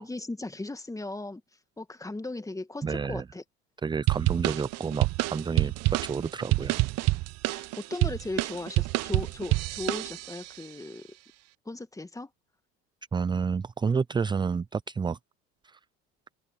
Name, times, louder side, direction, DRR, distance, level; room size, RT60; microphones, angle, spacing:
voice 1, 0.0-1.4 1.8-3.4 7.5-11.1 11.7-12.3, left 2 dB, 10° left, 2.1 m, -37 dB
voice 2, 2.8-3.2 3.8-5.7 6.0-6.8 13.1-15.2 15.6-15.8, right 5 dB, 15° right, 0.5 m, -29 dB
sound 1, 4.1-10.5, right 20 dB, 55° right, 0.8 m, -28 dB
open air
hypercardioid pair, 75°, 31 cm